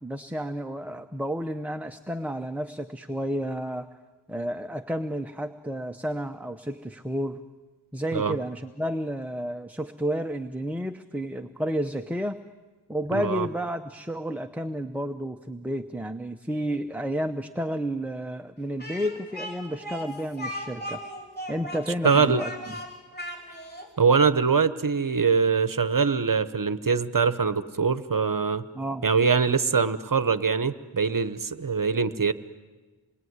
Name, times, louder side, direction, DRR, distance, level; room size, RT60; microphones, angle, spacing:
voice 1, 0.0-3.9 4.3-7.4 7.9-12.4 12.9-21.0 21.5-22.5 28.7-29.0, equal, 5° right, 6 dB, 0.8 m, -31 dB
voice 2, 13.1-13.5 22.0-22.4 24.0-28.6 29.0-32.3, right 5 dB, 40° right, 12 dB, 1.1 m, -23 dB
Speech, 18.8-23.9, equal, 20° left, 5.6 m, -37 dB
27.5 x 21.5 x 9.6 m, 1.3 s
wide cardioid pair, 100°, 48 cm